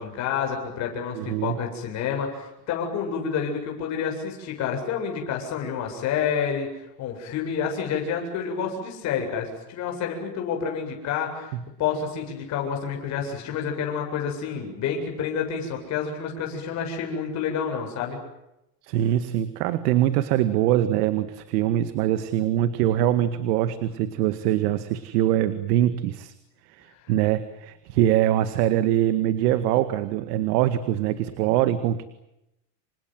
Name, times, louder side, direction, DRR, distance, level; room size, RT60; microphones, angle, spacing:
voice 1, 0.0-6.7 7.0-11.5 11.8-18.2, left 7 dB, 35° left, 2 dB, 7.9 m, -29 dB
voice 2, 1.1-1.6 11.5-11.6 18.8-26.3 26.7-32.0, right 12 dB, 75° right, 11 dB, 2.1 m, -23 dB
29.5 x 26.0 x 7.7 m, 0.87 s
cardioid pair, 175°, 47 cm